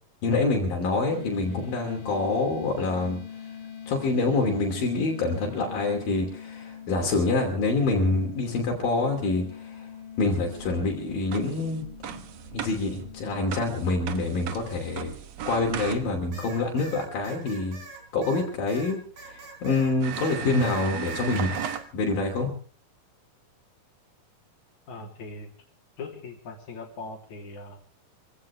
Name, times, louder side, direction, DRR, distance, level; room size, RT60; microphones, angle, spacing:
voice 1, 0.2-3.2 3.9-9.9 10.2-12.2 12.5-15.1 15.5-17.8 18.1-21.6 21.9-22.5, left 3 dB, 80° left, 0 dB, 4.7 m, -26 dB
sound 1, 1.1-14.9, left 8 dB, 40° left, 2.5 m, -43 dB
sound 2, 10.5-16.4 18.6-18.7 19.3-19.4 20.0-21.9, right 9 dB, 60° right, 2.0 m, -37 dB
sound 3, 16.3-20.4 20.6-21.8, right 3 dB, 85° right, 5.3 m, -44 dB
voice 2, 24.9-25.5 26.0-27.8, left 3 dB, 55° left, 1 dB, 4.5 m, -40 dB
26.0 x 16.0 x 3.5 m, 0.42 s
omnidirectional pair, 4.0 m